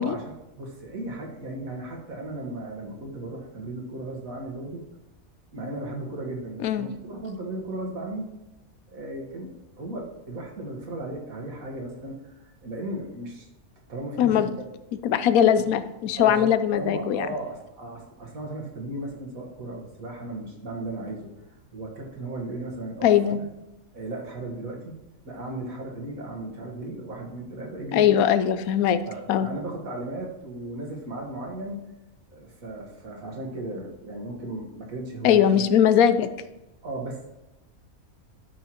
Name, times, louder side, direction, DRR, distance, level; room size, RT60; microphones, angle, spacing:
voice 1, 0.0-4.8 5.5-8.3 8.9-9.5 9.8-13.5 13.9-14.5 16.1-21.3 21.7-23.5 23.9-25.0 25.3-28.1 29.1-31.8 32.3-35.6 36.8-37.3, right 2 dB, 75° right, -1 dB, 1.9 m, -36 dB
voice 2, 14.2-14.5 15.0-17.3 23.0-23.4 27.9-29.0 29.3-29.5 35.2-36.3, left 9 dB, 80° left, 12 dB, 1.0 m, -20 dB
12.5 x 5.6 x 3.0 m, 0.97 s
omnidirectional pair, 1.5 m